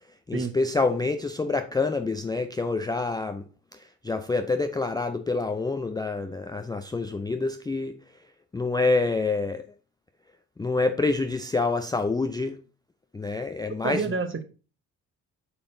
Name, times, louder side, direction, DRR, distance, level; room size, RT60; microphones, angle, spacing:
voice 1, 0.3-3.4 3.7-8.0 8.5-9.7 10.6-12.6 13.1-14.1, left 3 dB, 10° left, 0.5 m, -27 dB
voice 2, 13.8-14.4, right 4 dB, 30° right, 1.1 m, -28 dB
8.6 x 6.8 x 2.7 m
figure-of-eight pair, 40°, 44 cm